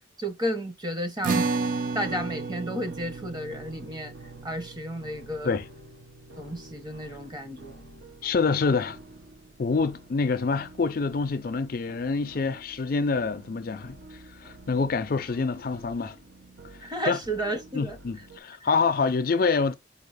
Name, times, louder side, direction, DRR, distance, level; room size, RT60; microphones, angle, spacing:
voice 1, 0.2-1.5 1.9-4.1 4.4-5.6 6.4-7.8 16.8-18.0, equal, 20° right, 1.0 m, -32 dB
sound 1, 1.2-7.9, right 4 dB, 45° right, 0.4 m, -33 dB
sound 2, 2.0-18.4, right 1 dB, 65° right, 0.9 m, -49 dB
voice 2, 8.2-9.0 9.6-16.2 17.1-17.2 17.7-19.7, left 4 dB, 50° left, 0.4 m, -26 dB
4.7 x 2.3 x 4.8 m
head